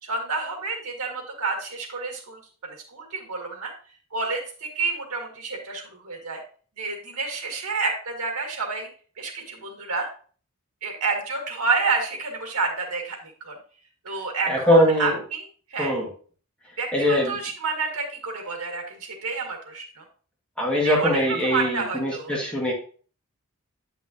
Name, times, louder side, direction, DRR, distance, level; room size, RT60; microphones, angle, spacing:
voice 1, 0.0-3.7 4.1-6.4 6.8-8.9 9.2-10.1 10.8-13.6 14.0-15.9 16.8-20.0 20.8-22.3, right 4 dB, 80° right, 2 dB, 1.9 m, -29 dB
voice 2, 14.5-15.2 15.8-16.1 16.9-17.4 20.6-22.7, equal, 5° left, -4 dB, 1.8 m, -21 dB
8.7 x 5.6 x 2.8 m, 0.42 s
head